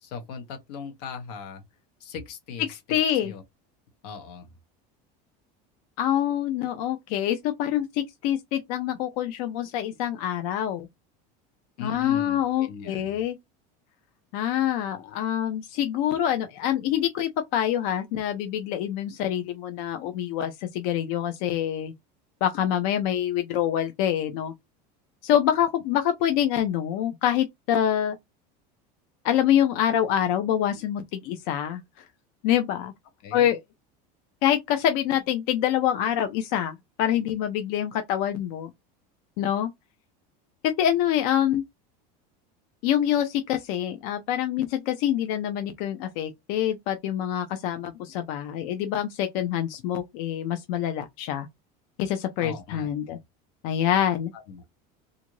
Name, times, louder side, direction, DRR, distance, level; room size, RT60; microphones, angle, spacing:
voice 1, 0.0-1.6 2.0-2.8 3.2-3.4 4.0-4.5 11.8-13.2 33.2-33.5 52.4-53.2 54.3-54.6, left 6 dB, 85° left, 0.9 m, -39 dB
voice 2, 2.9-3.3 6.0-10.9 11.8-13.4 14.3-21.9 22.4-24.5 25.2-28.2 29.2-32.0 32.4-32.9 33.3-33.6 34.4-38.7 39.4-39.7 40.6-41.6 42.8-51.5 52.0-53.2 53.6-54.3, left 10 dB, 65° left, 0.4 m, -26 dB
2.6 x 2.5 x 3.0 m
cardioid pair, 150°, 20 cm